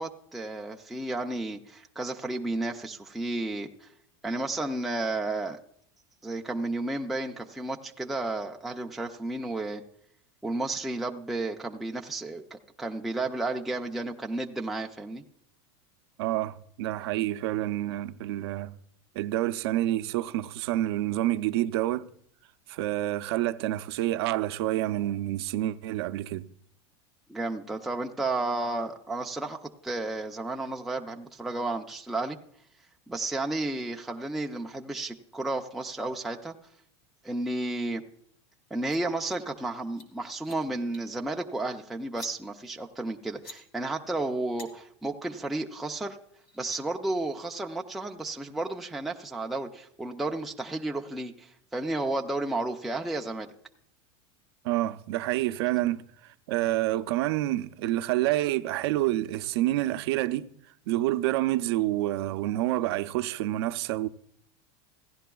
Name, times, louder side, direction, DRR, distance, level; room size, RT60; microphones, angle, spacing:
voice 1, 0.0-3.9 4.2-5.6 6.2-9.8 10.4-15.2 27.3-32.4 33.1-36.5 37.2-38.0 38.7-46.2 46.6-53.5, right 2 dB, ahead, 0.3 m, -32 dB
voice 2, 16.2-18.7 19.2-22.1 22.7-26.4 54.6-56.0 56.5-60.5 60.9-64.1, right 15 dB, 70° right, 0.5 m, -28 dB
sound 1, 38.7-39.0 39.3-39.4 39.8-40.1 40.3-40.6 40.9-41.1 42.0-42.3 43.2-43.6 44.6-44.7 46.0-46.1 46.4-46.8, left 1 dB, 65° left, 1.8 m, -47 dB
16.0 x 11.0 x 2.3 m
supercardioid pair, 155°, 14 cm